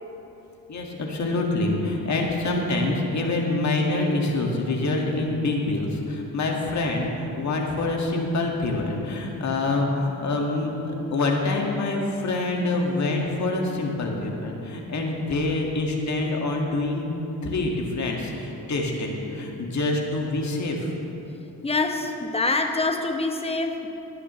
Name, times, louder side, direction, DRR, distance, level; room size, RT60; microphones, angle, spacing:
voice 1, 0.7-17.1 17.4-20.9 21.2-21.3, left 2 dB, 50° left, 0 dB, 1.9 m, -26 dB
voice 2, 21.6-23.9, left 3 dB, 15° left, 5 dB, 1.0 m, -25 dB
16.5 x 10.0 x 3.2 m, 3.0 s
cardioid pair, 85°, 37 cm